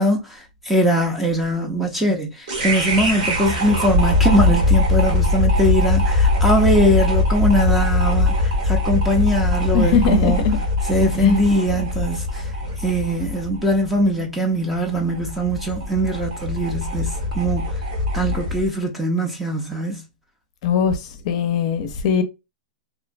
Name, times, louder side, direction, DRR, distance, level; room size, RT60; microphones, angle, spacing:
voice 1, 0.0-10.5 10.8-12.5 12.8-17.7 18.1-20.0, right 1 dB, 5° right, 0.4 m, -21 dB
sound 1, 2.5-18.7, left 2 dB, 65° right, 1.2 m, -21 dB
voice 2, 9.7-10.6 11.2-11.4 20.6-20.9 21.3-22.2, left 6 dB, 45° left, 0.5 m, -19 dB
2.7 x 2.1 x 2.5 m
hypercardioid pair, 155°, 4 cm